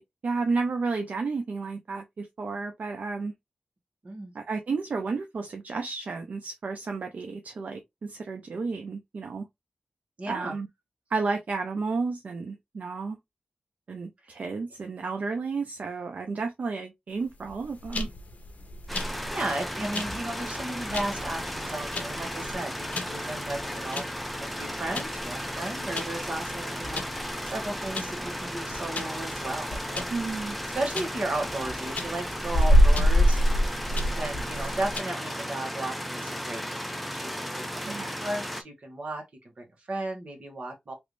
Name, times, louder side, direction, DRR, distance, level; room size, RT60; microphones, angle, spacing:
voice 1, 0.0-3.3 4.3-9.5 10.3-10.7 11.1-13.2 13.9-18.1 30.1-30.6 37.8-38.2, right 4 dB, 65° right, 0.5 m, -32 dB
voice 2, 10.2-10.6 14.2-14.4 18.9-24.0 24.4-27.1 27.4-30.0 30.7-33.4 34.2-37.9 38.2-39.2 39.6-40.9, right 2 dB, 50° right, 1.4 m, -35 dB
sound 1, 17.4-35.0, equal, 55° left, 0.8 m, -27 dB
sound 2, 18.9-38.6, equal, ahead, 0.4 m, -35 dB
3.1 x 2.6 x 3.1 m
wide cardioid pair, 95°, 3 cm